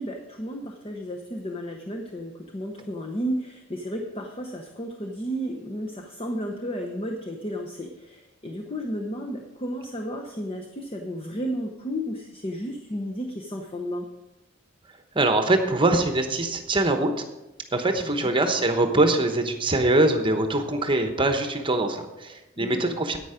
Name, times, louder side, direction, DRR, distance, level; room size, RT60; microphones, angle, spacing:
voice 1, 0.0-14.1 18.0-18.3 22.6-23.0, equal, 30° left, 2 dB, 0.8 m, -33 dB
voice 2, 15.1-17.1 17.7-23.2, right 2 dB, 25° right, 6 dB, 1.0 m, -23 dB
10.0 x 8.9 x 5.0 m, 1.0 s
head